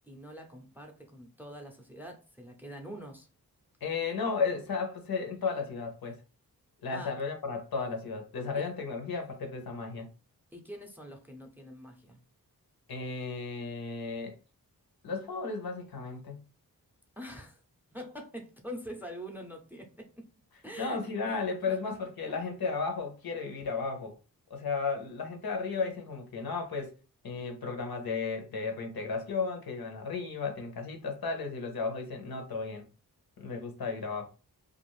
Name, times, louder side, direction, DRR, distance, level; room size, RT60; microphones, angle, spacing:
voice 1, 0.1-3.3 6.9-7.2 10.5-12.2 17.2-17.6 17.9-20.3 20.6-21.8 22.3-22.4, equal, 5° right, 0.5 m, -45 dB
voice 2, 3.8-6.2 6.8-10.1 12.9-14.3 15.0-16.5 20.8-24.1 24.5-26.9 27.2-32.9 33.4-34.3, left 4 dB, 80° left, 0.9 m, -34 dB
2.5 x 2.3 x 3.1 m
wide cardioid pair, 135°, 36 cm